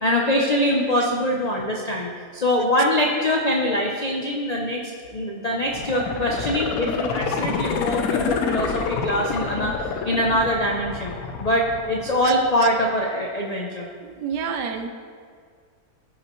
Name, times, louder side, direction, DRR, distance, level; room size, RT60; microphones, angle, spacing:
voice 1, 0.0-9.7 10.0-13.9, equal, 80° left, -1 dB, 0.3 m, -23 dB
sound 1, 5.6-12.6 13.0-13.1, left 5 dB, 65° left, 1.1 m, -28 dB
voice 2, 14.0-14.9, right 6 dB, 80° right, 7 dB, 1.3 m, -29 dB
15.0 x 5.5 x 3.1 m, 2.1 s
omnidirectional pair, 1.8 m